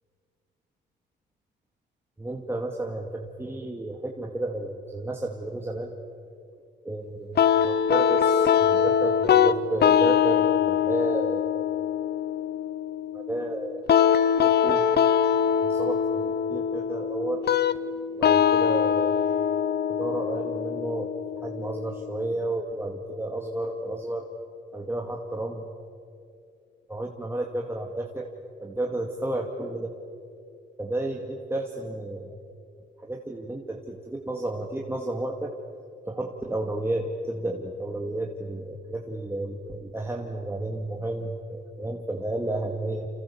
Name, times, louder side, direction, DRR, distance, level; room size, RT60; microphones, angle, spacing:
voice 1, 2.2-5.9 6.8-11.5 13.1-13.8 14.4-14.9 15.6-17.4 18.1-19.2 19.9-21.1 21.4-24.3 24.7-25.6 26.9-28.3 28.6-30.0 30.8-32.3 33.0-35.5 36.1-43.1, right 1 dB, 10° right, 0 dB, 2.3 m, -32 dB
sound 1, 7.4-22.3, left 8 dB, 55° left, 0.9 m, -23 dB
28.5 x 27.0 x 7.1 m, 2.4 s
cardioid pair, 90°, 20 cm